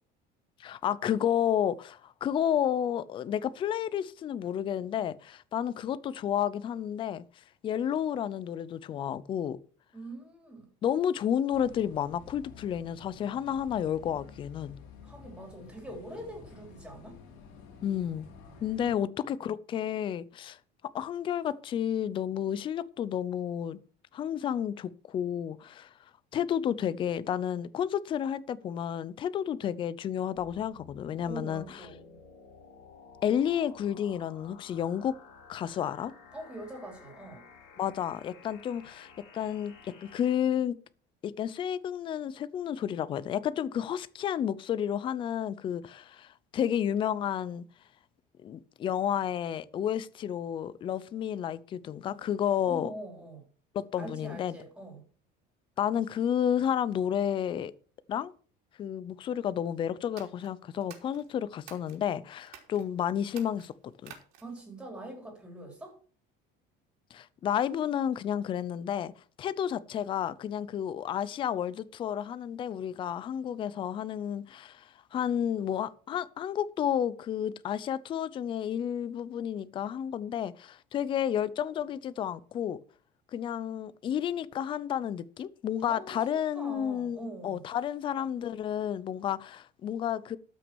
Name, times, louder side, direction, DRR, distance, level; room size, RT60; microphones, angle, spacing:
voice 1, 0.6-7.2 7.6-9.6 10.8-14.8 17.8-18.3 18.6-20.6 20.9-23.8 24.1-25.9 26.3-31.8 33.2-35.1 35.5-36.1 37.8-40.8 41.2-47.6 48.4-52.9 53.7-54.6 55.8-57.7 58.1-58.3 58.8-63.7 64.0-64.1 67.1-69.1 69.4-82.8 83.3-90.4, left 9 dB, 25° left, 0.5 m, -31 dB
voice 2, 9.9-10.7 15.0-17.2 18.8-18.9 31.3-32.2 36.3-37.4 52.7-53.4 54.0-55.0 64.4-66.0 85.8-87.6, right 1 dB, 5° right, 3.7 m, -43 dB
sound 1, 11.5-19.0, left 5 dB, 75° left, 3.7 m, -51 dB
sound 2, 30.4-40.4, left 6 dB, 55° left, 4.0 m, -54 dB
sound 3, 60.0-62.0 62.4-62.8 63.2-64.6, right 10 dB, 85° right, 3.4 m, -51 dB
13.0 x 6.1 x 6.1 m
cardioid pair, 175°, 20 cm